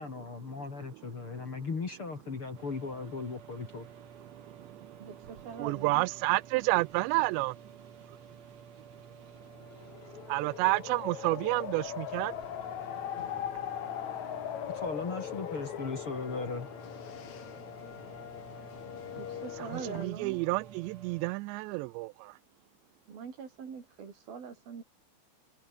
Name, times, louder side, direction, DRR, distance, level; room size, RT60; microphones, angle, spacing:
voice 1, 0.0-3.9 14.7-16.7, left 4 dB, 35° left, 3.3 m, -37 dB
sound 1, 2.5-21.3, right 7 dB, 45° right, 3.5 m, -52 dB
voice 2, 5.0-6.1 19.2-20.4 23.1-24.8, right 6 dB, 60° right, 5.6 m, -43 dB
voice 3, 5.6-7.5 10.3-12.3 19.7-22.3, right 23 dB, 90° right, 2.8 m, -29 dB
sound 2, 9.4-20.1, left 10 dB, 55° left, 2.4 m, -40 dB
omnidirectional pair, 5.0 m